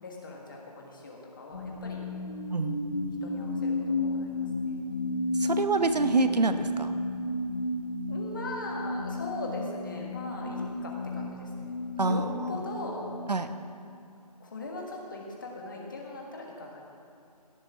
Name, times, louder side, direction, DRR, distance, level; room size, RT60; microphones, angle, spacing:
voice 1, 0.0-2.0 3.2-5.1 8.1-13.0 14.4-16.8, left 2 dB, 30° left, -1 dB, 1.7 m, -40 dB
sound 1, 1.5-13.7, left 2 dB, 50° left, 2.3 m, -33 dB
voice 2, 2.5-2.8 5.4-6.9 12.0-12.6 13.3-13.5, right 3 dB, 80° right, 9 dB, 0.9 m, -27 dB
17.5 x 11.0 x 3.7 m, 2.5 s
figure-of-eight pair, 170°, 21 cm